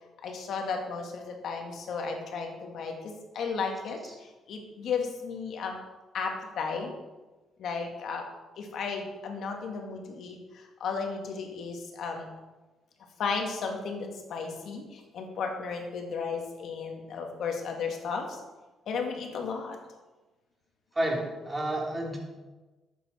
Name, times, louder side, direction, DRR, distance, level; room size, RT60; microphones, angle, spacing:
voice 1, 0.2-5.8 6.1-6.9 7.6-8.2 8.6-12.3 13.2-18.4 18.9-19.8, left 5 dB, 70° left, 2 dB, 2.0 m, -34 dB
voice 2, 20.9-22.2, right 1 dB, 20° right, -1 dB, 3.2 m, -30 dB
11.5 x 8.3 x 4.4 m, 1.2 s
cardioid pair, 90°, 0 cm